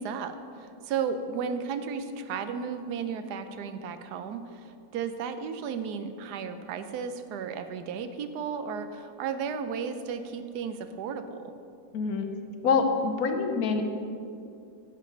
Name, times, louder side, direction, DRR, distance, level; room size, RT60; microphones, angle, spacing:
voice 1, 0.0-11.5, right 6 dB, 90° right, 9 dB, 1.2 m, -34 dB
voice 2, 11.9-12.3 12.6-13.8, left 4 dB, 70° left, 6 dB, 1.2 m, -25 dB
10.0 x 6.7 x 3.9 m, 2.5 s
omnidirectional pair, 1.7 m